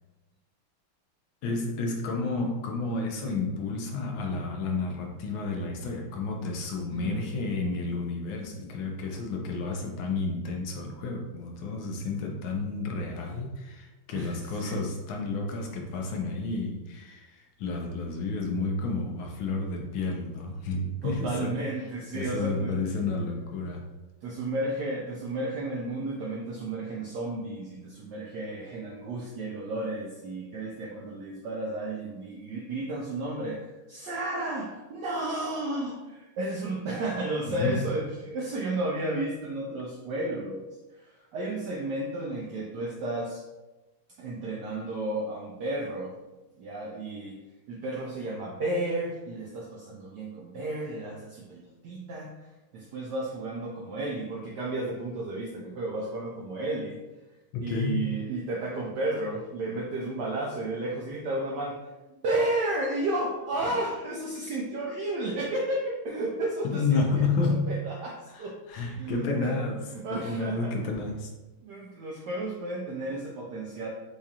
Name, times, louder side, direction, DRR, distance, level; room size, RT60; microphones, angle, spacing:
voice 1, 1.4-21.6 22.1-23.8 37.4-37.8 57.5-58.1 66.6-67.7 68.3-69.8 70.1-71.3, left 3 dB, 75° left, 2 dB, 1.4 m, -31 dB
voice 2, 6.9-7.3 14.1-14.8 21.0-22.8 24.2-33.6 33.9-40.7 40.9-43.4 44.2-46.1 46.6-47.4 47.7-52.4 52.7-57.0 57.6-61.8 62.2-67.2 67.7-69.5 69.9-70.7 71.6-73.9, right 2 dB, 80° right, -2 dB, 0.9 m, -33 dB
4.8 x 2.4 x 2.7 m, 1.1 s
omnidirectional pair, 2.3 m